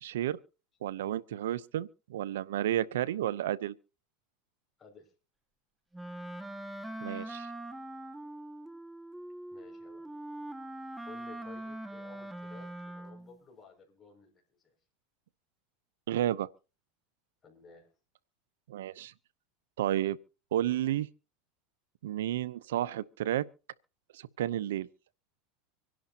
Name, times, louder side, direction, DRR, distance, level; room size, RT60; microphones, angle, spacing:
voice 1, 0.0-0.4 0.8-3.7 7.0-7.5 16.1-16.5 18.7-19.1 19.8-20.2 20.5-21.1 22.0-23.4 24.1-24.9, right 12 dB, 85° right, 0.7 m, -31 dB
Wind instrument woodwind instrument, 5.9-13.4, right 1 dB, 5° right, 1.8 m, -42 dB
voice 2, 9.5-10.1 11.1-14.7 17.4-17.9, left 4 dB, 25° left, 6.3 m, -55 dB
25.5 x 11.0 x 2.9 m
supercardioid pair, 110°, 0 cm